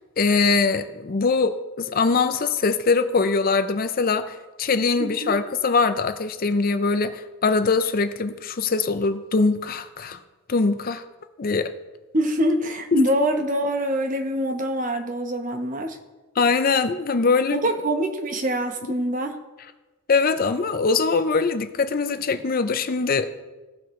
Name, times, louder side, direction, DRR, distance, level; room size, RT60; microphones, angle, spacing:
voice 1, 0.2-10.2 10.5-11.0 11.4-11.7 12.9-13.0 16.4-17.6 20.1-23.3, left 4 dB, 45° left, 10 dB, 0.5 m, -22 dB
voice 2, 5.0-5.4 12.1-16.0 17.5-19.4, equal, 40° right, 6 dB, 0.9 m, -24 dB
16.5 x 5.8 x 3.2 m, 1.1 s
head